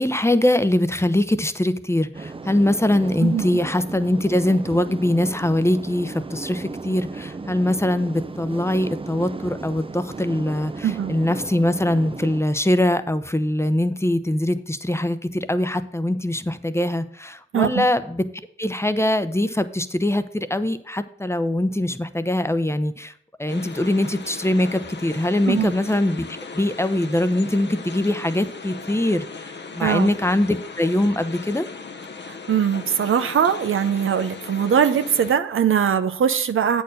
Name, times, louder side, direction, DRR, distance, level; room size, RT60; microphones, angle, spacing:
voice 1, 0.0-18.2 18.6-23.1 23.4-26.2 26.5-31.7, left 1 dB, 10° left, 11 dB, 0.7 m, -22 dB
sound 1, 2.1-12.4, right 3 dB, 25° right, 0.5 m, -35 dB
voice 2, 3.2-3.6 10.8-11.1 17.5-17.8 25.5-25.7 29.8-30.1 32.3-36.8, right 8 dB, 80° right, 10 dB, 0.6 m, -21 dB
sound 2, 23.5-35.3, left 4 dB, 60° left, 0.8 m, -38 dB
8.2 x 4.6 x 6.4 m, 0.64 s
cardioid pair, 40°, 21 cm